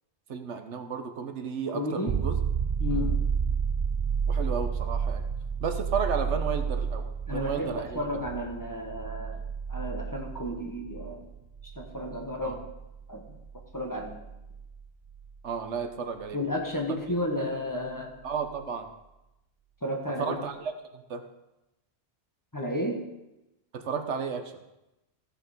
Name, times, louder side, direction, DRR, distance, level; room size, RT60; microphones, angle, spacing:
voice 1, 0.3-2.4 2.9-3.2 4.3-5.2 5.6-8.2 12.4-12.6 15.4-16.4 18.2-18.9 20.2-21.2 23.7-24.5, right 6 dB, 90° right, 7 dB, 1.3 m, -33 dB
voice 2, 1.7-2.2 2.8-3.2 7.3-9.4 9.7-11.3 11.7-12.6 13.1-13.4 13.7-14.2 16.3-18.1 19.8-20.4 22.5-23.0, left 1 dB, 15° left, 1 dB, 1.6 m, -32 dB
sound 1, 2.1-15.6 18.3-18.4, right 6 dB, 55° right, 0.4 m, -31 dB
15.0 x 6.9 x 5.2 m, 0.93 s
omnidirectional pair, 1.1 m